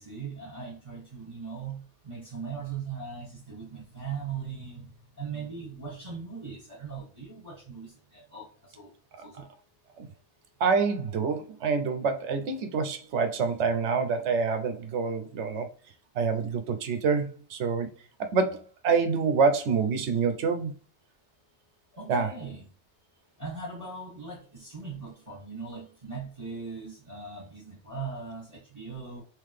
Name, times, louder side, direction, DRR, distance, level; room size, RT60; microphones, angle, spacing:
voice 1, 0.0-8.9 9.2-9.5 21.9-22.6 23.4-29.2, right 5 dB, 35° right, 1.8 m, -39 dB
voice 2, 10.6-15.7 16.2-17.9 18.2-20.7 22.1-22.3, right 5 dB, 80° right, 0.9 m, -26 dB
3.7 x 3.1 x 3.2 m
omnidirectional pair, 1.2 m